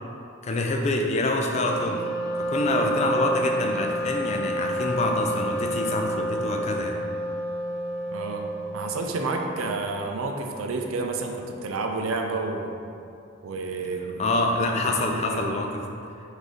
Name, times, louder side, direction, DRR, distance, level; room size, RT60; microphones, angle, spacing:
voice 1, 0.4-2.0 2.5-7.0 14.2-15.8, left 2 dB, 30° left, 2 dB, 0.3 m, -26 dB
Wind instrument woodwind instrument, 1.5-9.3, right 1 dB, 55° left, 0.9 m, -29 dB
voice 2, 8.1-12.8 13.4-14.2 14.7-15.2, right 3 dB, 80° right, 3 dB, 0.4 m, -30 dB
4.9 x 2.7 x 3.8 m, 2.6 s
head